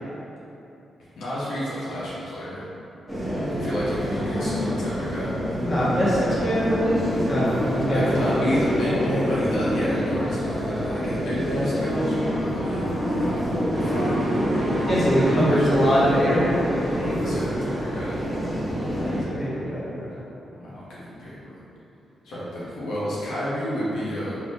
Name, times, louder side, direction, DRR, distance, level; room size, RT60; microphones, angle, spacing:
voice 1, 1.2-2.6 3.6-5.3 7.8-12.9 13.2-14.2 15.4-16.0 16.9-18.2 20.6-21.6 22.2-24.4, equal, 85° left, -9 dB, 0.7 m, -30 dB
sound 1, 3.1-19.2, equal, 5° left, 0.9 m, -27 dB
voice 2, 5.6-8.6 14.8-17.3 18.9-20.1, equal, 40° left, -8 dB, 0.9 m, -23 dB
sound 2, 13.7-19.7, right 1 dB, 45° right, 0.7 m, -31 dB
3.4 x 2.9 x 2.6 m, 2.9 s
cardioid pair, 75°, 0 cm